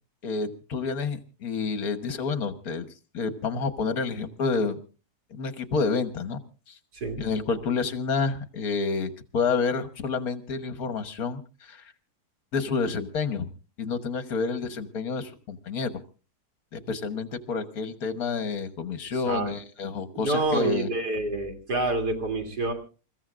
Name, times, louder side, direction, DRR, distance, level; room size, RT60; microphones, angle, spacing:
voice 1, 0.2-2.9 3.1-4.8 5.3-6.4 6.7-6.8 7.2-11.9 12.5-13.5 13.8-15.9 16.7-20.9, left 4 dB, 65° left, 10 dB, 1.7 m, -29 dB
voice 2, 20.1-22.7, right 2 dB, 90° right, 3 dB, 3.4 m, -27 dB
28.0 x 15.0 x 2.5 m, 0.35 s
omnidirectional pair, 1.7 m